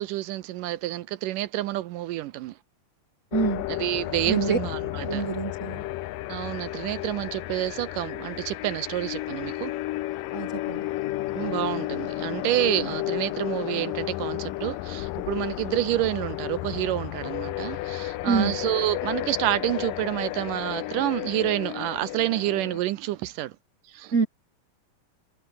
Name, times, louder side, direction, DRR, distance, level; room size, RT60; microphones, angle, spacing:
voice 1, 0.0-2.5 3.7-5.2 6.3-9.7 11.3-23.5 23.9-24.3, right 15 dB, 75° right, 2.3 m, -28 dB
sound 1, 3.3-22.8, left 16 dB, 80° left, 2.4 m, -32 dB
voice 2, 3.3-3.7 4.2-4.6 5.0-5.8 10.3-10.9 18.2-18.6 24.1-24.3, right 5 dB, 45° right, 0.9 m, -26 dB
omnidirectional pair, 4.0 m